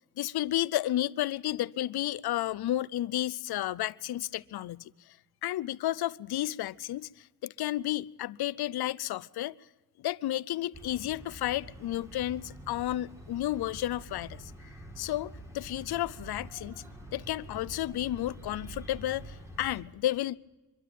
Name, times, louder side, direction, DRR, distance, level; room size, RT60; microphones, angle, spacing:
voice 1, 0.2-5.2 5.4-9.6 10.0-14.5 15.0-16.8 17.1-20.4, left 14 dB, 80° left, 0.5 m, -32 dB
sound 1, 10.7-19.8, right 1 dB, 5° right, 1.9 m, -47 dB
24.5 x 12.0 x 9.1 m
wide cardioid pair, 165°, 37 cm